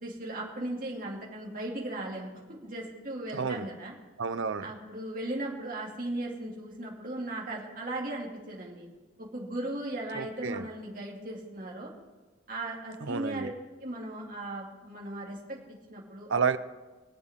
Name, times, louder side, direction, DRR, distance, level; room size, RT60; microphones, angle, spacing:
voice 1, 0.0-3.9 4.6-8.9 9.2-11.9 12.5-13.5 13.8-16.3, right 1 dB, 45° right, -3 dB, 2.7 m, -37 dB
voice 2, 3.3-3.7 4.2-4.7 10.1-10.7 13.0-13.5 16.3-16.6, right 5 dB, 80° right, 12 dB, 0.7 m, -30 dB
24.5 x 8.3 x 3.8 m, 1.2 s
head